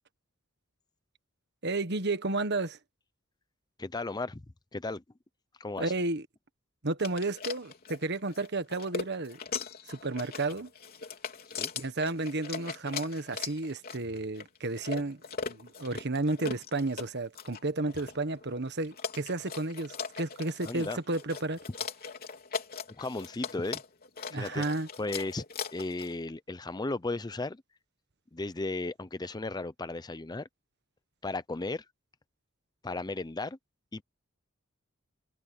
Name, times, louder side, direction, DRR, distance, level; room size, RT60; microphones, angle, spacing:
voice 1, 1.6-2.8 5.8-6.3 6.8-9.4 9.9-10.7 11.7-21.6 24.3-24.9, right 2 dB, 55° right, 1.5 m, -32 dB
voice 2, 3.8-4.4 4.7-5.0 5.6-5.9 11.6-11.7 20.6-21.0 22.9-23.8 24.3-24.6 25.0-25.4 25.7-27.6 28.3-30.5 31.2-31.8 32.8-33.6 33.9-34.0, left 2 dB, 20° left, 0.6 m, -35 dB
sound 1, 7.0-26.2, left 5 dB, 45° left, 3.7 m, -40 dB
head